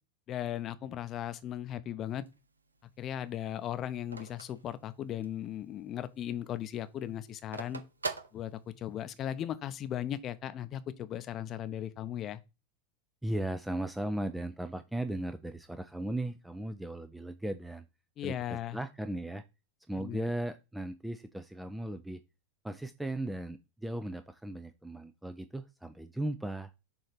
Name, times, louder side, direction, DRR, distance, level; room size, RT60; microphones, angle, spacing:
voice 1, 0.3-2.2 3.0-7.8 8.3-12.4 18.2-18.8 20.0-20.3, left 11 dB, 35° left, 0.7 m, -37 dB
Telephone, 2.1-5.5 5.9-6.0 6.2-9.1, right 3 dB, 85° right, 0.6 m, -42 dB
voice 2, 13.2-17.9 18.2-19.4 19.9-22.2 22.6-26.7, right 1 dB, 5° right, 0.5 m, -37 dB
7.0 x 2.8 x 5.1 m
figure-of-eight pair, 90°, 0 cm